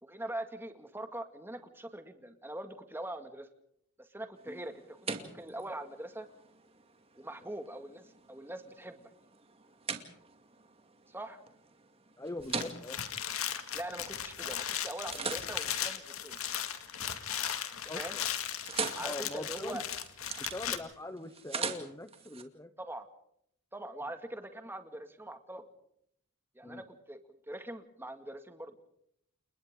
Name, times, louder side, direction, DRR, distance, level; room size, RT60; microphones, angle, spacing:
voice 1, 0.0-3.5 4.0-6.3 7.2-9.0 11.1-11.4 13.7-16.4 17.9-18.2 18.9-19.8 22.8-23.1 23.7-25.7 26.6-28.7, right 1 dB, 10° right, 7 dB, 2.1 m, -42 dB
sound 1, 4.4-14.4 14.8-17.1 17.4-17.9 18.1-22.4, right 5 dB, 25° right, 2.3 m, -42 dB
voice 2, 12.2-13.0 17.9-18.2 19.0-19.8 20.4-22.7 26.6-26.8, left 1 dB, 15° left, 10 dB, 0.9 m, -42 dB
sound 2, 12.4-20.8, left 9 dB, 75° left, 2.1 m, -37 dB
30.0 x 29.5 x 3.8 m, 0.70 s
head